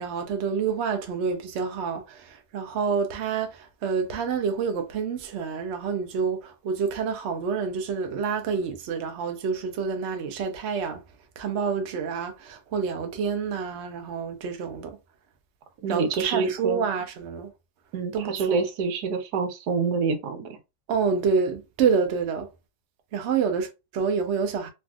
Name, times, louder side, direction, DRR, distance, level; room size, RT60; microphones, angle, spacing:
voice 1, 0.0-11.0 11.4-15.0 15.9-17.5 18.1-18.6 20.9-22.5 23.1-24.7, right 5 dB, 65° right, 0.7 m, -28 dB
voice 2, 15.8-16.8 17.9-20.6, right 5 dB, 85° right, 1.3 m, -27 dB
3.3 x 2.5 x 2.3 m
omnidirectional pair, 1.7 m